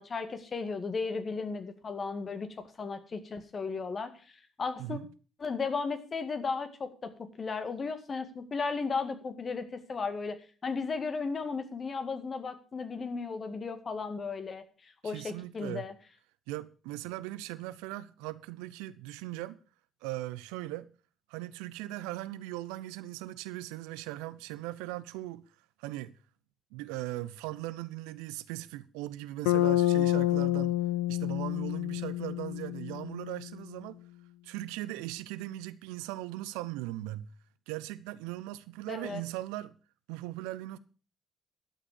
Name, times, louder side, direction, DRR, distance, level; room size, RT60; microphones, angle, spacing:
voice 1, 0.0-5.0 5.4-15.9 38.9-39.2, left 4 dB, 45° left, 2.0 m, -35 dB
voice 2, 15.0-15.8 16.5-19.6 20.0-20.9 21.3-25.4 25.8-26.1 26.7-30.7 31.1-34.0 34.4-37.3 37.7-39.7 40.1-40.8, right 16 dB, 75° right, 0.6 m, -39 dB
Bass guitar, 29.5-33.5, left 14 dB, 80° left, 0.5 m, -28 dB
12.0 x 7.5 x 6.7 m
hypercardioid pair, 45°, 0 cm